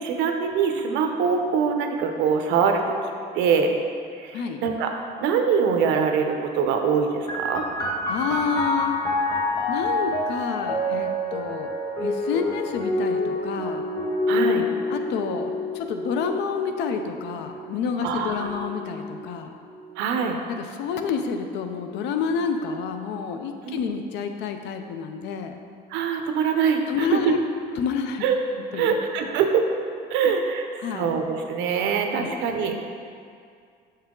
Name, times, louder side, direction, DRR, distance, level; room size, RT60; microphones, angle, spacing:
voice 1, 0.0-3.0 3.3-3.7 4.2-7.6 14.3-14.6 18.0-18.6 20.0-20.4 23.6-23.8 25.9-27.1 28.2-28.4 28.7-29.7 30.1-32.8, right 6 dB, 90° right, 4 dB, 0.7 m, -24 dB
voice 2, 4.3-4.6 8.1-9.0 9.7-11.7 12.0-13.9 14.9-19.5 20.5-25.5 26.9-27.4 27.8-28.2 28.7-29.0 30.2-30.3 30.8-31.1 32.2-32.4, left 6 dB, 75° left, 6 dB, 0.6 m, -29 dB
sound 1, 7.3-20.5 21.4-22.1, left 2 dB, 25° left, 0.8 m, -28 dB
6.9 x 5.6 x 3.8 m, 2.3 s
cardioid pair, 160°, 18 cm